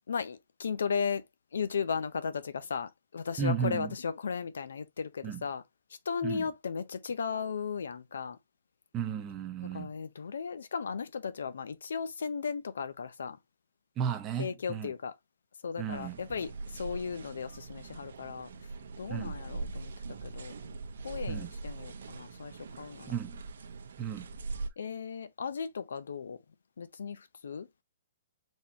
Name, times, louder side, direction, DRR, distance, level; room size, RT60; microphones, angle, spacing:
voice 1, 0.1-1.3 1.5-5.6 5.9-8.4 9.6-13.4 14.4-15.1 15.6-18.5 19.0-19.9 20.2-20.6 21.0-23.1 24.8-26.4 26.8-27.7, left 6 dB, 90° left, 0.6 m, -36 dB
voice 2, 3.4-3.9 5.2-5.4 6.2-6.4 8.9-9.9 14.0-14.9 15.8-16.2 19.1-19.4 21.3-21.5 23.1-23.4 24.0-24.3, right 7 dB, 15° right, 0.6 m, -34 dB
sound 1, 15.9-24.7, right 3 dB, 75° right, 0.8 m, -42 dB
4.2 x 3.6 x 2.8 m
hypercardioid pair, 165°, 0 cm